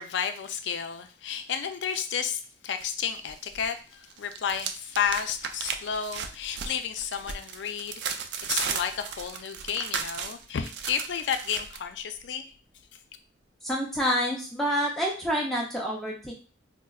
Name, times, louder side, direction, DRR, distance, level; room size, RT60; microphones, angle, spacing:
voice 1, 0.0-8.1 8.5-12.5, left 7 dB, 65° left, 0.4 m, -32 dB
sound 1, 2.8-3.7 3.9-11.8, right 6 dB, 60° right, 0.3 m, -35 dB
voice 2, 13.6-16.3, equal, ahead, 0.5 m, -28 dB
4.4 x 2.0 x 2.3 m
head